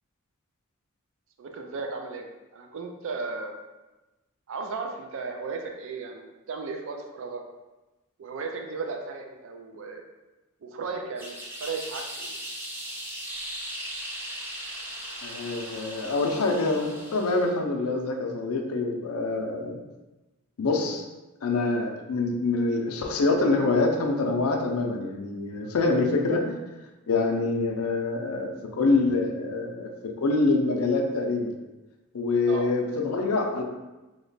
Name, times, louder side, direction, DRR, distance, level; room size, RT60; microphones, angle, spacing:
voice 1, 1.4-2.3 2.5-3.5 4.5-7.4 8.2-10.0 10.6-12.4 32.5-32.7, right 4 dB, 65° right, 3 dB, 0.4 m, -35 dB
sound 1, 11.2-17.5, right 1 dB, 10° right, 0.6 m, -38 dB
voice 2, 15.2-19.8 20.6-21.0 21.4-26.6 27.1-29.9 30.2-31.5 32.1-33.6, left 3 dB, 80° left, 2 dB, 0.5 m, -25 dB
3.0 x 2.1 x 3.9 m, 1.1 s
head